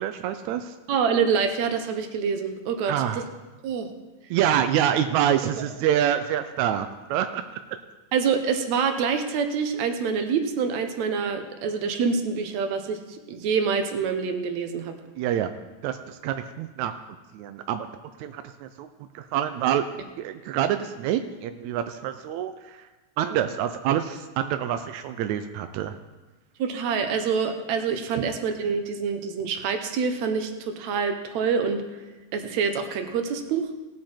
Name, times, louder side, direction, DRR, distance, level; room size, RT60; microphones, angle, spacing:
voice 1, 0.0-0.7 2.9-3.2 4.3-7.4 15.2-15.5 15.8-16.9 17.3-17.9 18.2-18.9 19.1-19.9 20.2-22.8 23.2-26.0 28.2-28.3, right 10 dB, 85° right, 8 dB, 1.6 m, -26 dB
voice 2, 0.9-3.2 3.6-3.9 8.1-14.9 23.3-23.4 26.6-31.8 32.3-33.7, right 6 dB, 70° right, 7 dB, 2.0 m, -26 dB
17.5 x 7.6 x 4.4 m, 1.2 s
omnidirectional pair, 3.8 m